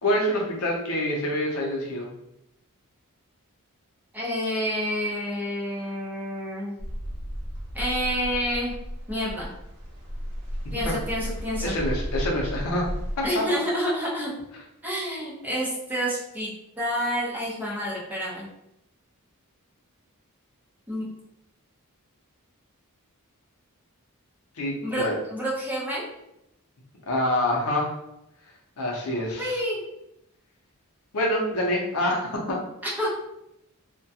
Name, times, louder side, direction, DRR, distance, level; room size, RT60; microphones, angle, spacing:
voice 1, 0.0-2.1 10.7-10.9 11.6-12.8 13.2-13.4 24.6-25.1 27.1-27.9 28.8-29.6 31.1-32.6, left 1 dB, 70° left, -2 dB, 0.6 m, -26 dB
voice 2, 4.1-6.8 7.7-8.7 9.1-9.5 10.7-11.7 13.2-14.3 14.8-16.5 16.8-18.5 20.9-21.1 24.8-26.1 29.4-29.8 33.0-33.1, equal, 10° right, -6 dB, 0.7 m, -28 dB
sound 1, 6.8-13.3, equal, 55° right, 0.7 m, -34 dB
2.2 x 2.1 x 2.7 m, 0.84 s
head